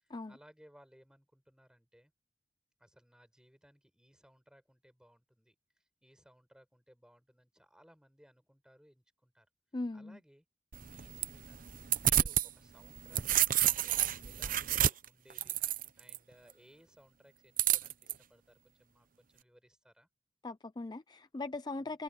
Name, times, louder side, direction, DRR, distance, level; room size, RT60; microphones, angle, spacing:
voice 1, 0.0-2.1 2.8-5.5 6.0-9.5 9.9-10.4 10.7-20.1 21.7-22.0, equal, 5° right, 8.0 m, -63 dB
voice 2, 9.7-10.2 20.4-22.0, left 2 dB, 25° left, 0.5 m, -40 dB
sound 1, 10.7-12.5 12.9-16.2 17.6-18.1, right 11 dB, 50° right, 0.8 m, -30 dB
head